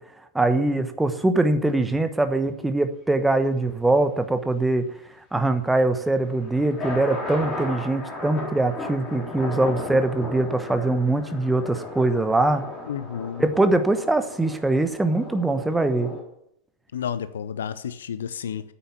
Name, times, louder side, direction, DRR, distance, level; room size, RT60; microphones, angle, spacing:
voice 1, 0.3-4.8 5.3-12.6 13.4-16.1, right 2 dB, 5° right, 1.1 m, -22 dB
sound 1, 6.0-16.2, left 3 dB, 20° left, 4.0 m, -35 dB
voice 2, 12.9-13.4 16.9-18.6, left 8 dB, 65° left, 0.7 m, -31 dB
9.5 x 8.4 x 9.5 m
figure-of-eight pair, 90°, 0 cm